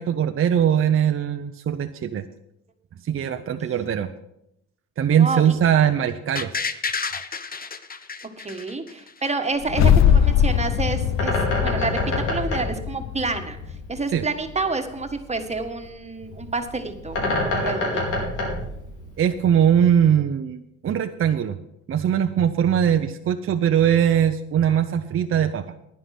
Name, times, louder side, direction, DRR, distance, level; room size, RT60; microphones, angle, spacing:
voice 1, 0.0-2.2 3.0-4.1 5.0-6.5 14.1-14.2 19.2-21.6 21.9-25.6, right 9 dB, 45° right, 6 dB, 0.7 m, -21 dB
voice 2, 5.2-5.5 8.4-13.6 13.9-18.2, right 3 dB, 20° right, 6 dB, 1.6 m, -29 dB
sound 1, 6.4-9.3 9.6-9.7, left 5 dB, 30° left, 0.9 m, -30 dB
sound 2, 9.6-14.0, left 9 dB, 60° left, 0.7 m, -21 dB
Bird, 10.3-19.5, left 1 dB, 80° left, 4.6 m, -29 dB
11.0 x 9.9 x 6.0 m, 0.80 s
cardioid pair, 90°, 30 cm